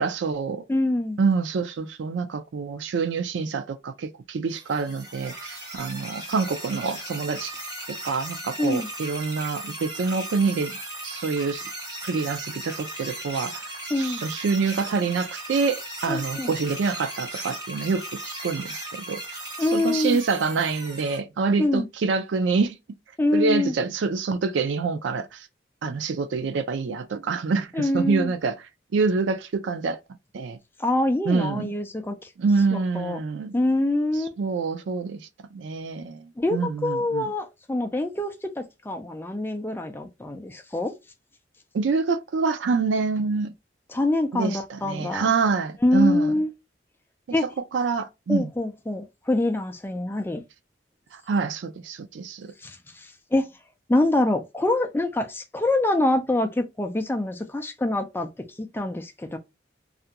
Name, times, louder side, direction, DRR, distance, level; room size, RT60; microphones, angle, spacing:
voice 1, 0.0-0.6 1.2-7.5 7.9-10.8 11.0-11.6 12.0-19.4 19.7-22.8 23.3-25.5 25.8-28.5 28.9-30.0 30.3-30.6 31.3-31.7 32.4-33.5 34.4-35.2 35.5-37.3 41.7-43.5 44.3-46.3 47.7-48.5 51.3-52.5, right 4 dB, 80° right, 0.4 m, -26 dB
voice 2, 0.7-1.2 8.6-8.9 13.9-14.2 16.1-16.5 19.6-20.2 21.6-21.9 23.2-23.7 27.7-28.3 30.8-32.3 32.7-33.2 33.5-34.4 36.4-40.9 43.9-45.3 45.8-46.5 47.3-47.5 48.3-50.4 52.6-53.5 53.9-58.3 58.6-59.4, left 2 dB, 10° left, 0.3 m, -25 dB
sound 1, 4.5-21.2, right 1 dB, 20° right, 0.9 m, -37 dB
2.4 x 2.2 x 2.7 m
head